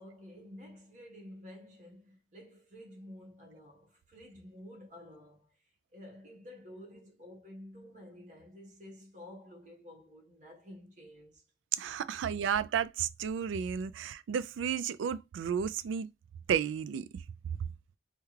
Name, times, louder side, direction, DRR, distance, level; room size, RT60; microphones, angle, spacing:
voice 1, 0.0-5.6 5.9-11.4, left 1 dB, 40° right, 1.4 m, -51 dB
voice 2, 11.8-16.1 16.5-17.1, right 7 dB, 90° right, 0.3 m, -32 dB
3.4 x 2.3 x 3.2 m
head